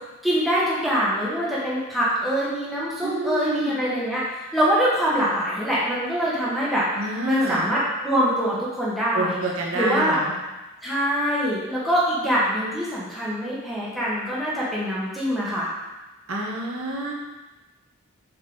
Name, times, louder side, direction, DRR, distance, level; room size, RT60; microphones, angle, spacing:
voice 1, 0.2-4.2 4.5-6.8 7.2-9.4 9.7-10.2 10.8-15.7, equal, ahead, -8 dB, 1.5 m, -24 dB
voice 2, 3.0-3.8 7.0-7.7 9.1-10.3 16.3-17.1, right 2 dB, 75° right, -3 dB, 1.3 m, -28 dB
7.5 x 4.2 x 3.9 m, 1.1 s
head